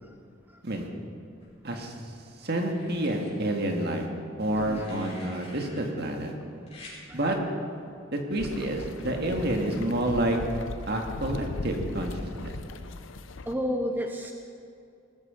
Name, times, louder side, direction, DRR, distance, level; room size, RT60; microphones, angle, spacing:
sound 1, 1.4-2.1 2.6-3.3 4.5-5.8 6.7-7.0 8.3-8.6, left 2 dB, 35° left, 5.1 m, -49 dB
voice 1, 1.6-1.9 2.4-4.1 4.4-6.3 7.1-7.4 8.1-10.4 10.9-12.6, right 1 dB, 55° right, 2 dB, 2.0 m, -29 dB
voice 2, 4.5-4.9 7.1-7.4 13.4-14.3, equal, 10° right, 3 dB, 0.8 m, -32 dB
sound 2, 8.4-13.5, left 3 dB, 70° left, 0.7 m, -38 dB
19.0 x 13.0 x 5.2 m, 2.5 s
head